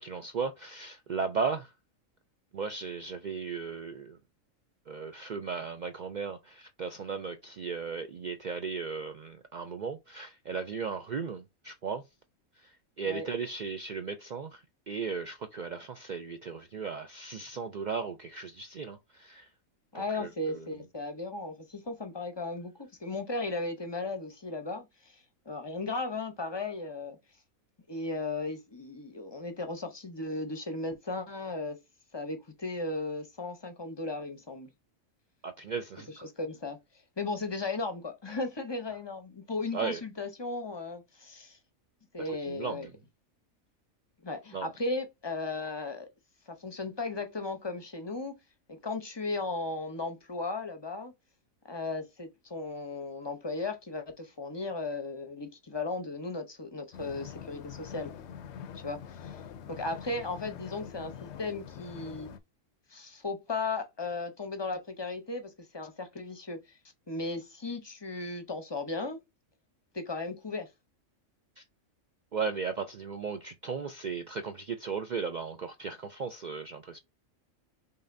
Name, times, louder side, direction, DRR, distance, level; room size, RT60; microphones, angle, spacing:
voice 1, 0.0-1.7 2.5-4.2 4.9-12.0 12.6-19.5 19.9-20.7 35.4-36.3 39.7-40.0 42.2-42.9 44.5-44.7 71.6-71.7 72.3-77.0, right 5 dB, 70° right, 0.4 m, -36 dB
voice 2, 19.9-27.2 27.9-31.8 32.1-34.7 36.2-36.8 37.2-41.6 42.1-42.9 44.2-46.1 46.5-48.3 48.7-51.1 51.7-58.1 58.8-59.4 59.7-62.3 62.9-66.8 67.1-69.2 69.9-70.7, left 3 dB, 25° left, 0.6 m, -36 dB
sound 1, 56.9-62.4, left 8 dB, 65° left, 0.8 m, -45 dB
5.5 x 3.3 x 2.6 m
omnidirectional pair, 1.4 m